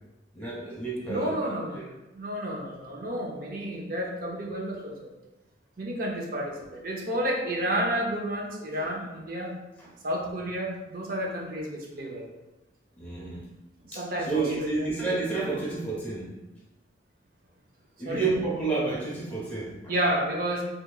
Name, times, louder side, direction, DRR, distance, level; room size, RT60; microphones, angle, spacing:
voice 1, 0.3-1.4 1.7-1.9 9.8-9.9 13.0-13.4 13.9-16.3 18.0-19.9, right 3 dB, 10° left, -7 dB, 1.0 m, -30 dB
voice 2, 1.1-1.9 2.1-5.1 5.8-9.5 10.0-12.3 13.8-14.9 18.1-18.2 19.9-20.6, equal, 50° right, -2 dB, 0.6 m, -31 dB
3.4 x 2.8 x 2.3 m, 1.0 s
head